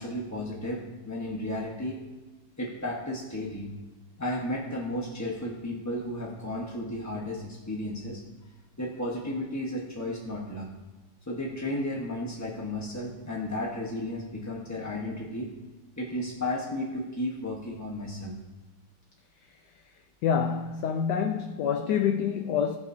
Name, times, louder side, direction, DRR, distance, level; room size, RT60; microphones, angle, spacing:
voice 1, 0.0-2.0 2.6-3.7 4.2-8.2 8.8-10.7 11.3-15.5 16.0-18.3, left 1 dB, 15° left, 0.6 m, -33 dB
voice 2, 20.2-22.8, left 7 dB, 75° left, 1.0 m, -27 dB
19.5 x 7.2 x 2.7 m
omnidirectional pair, 2.3 m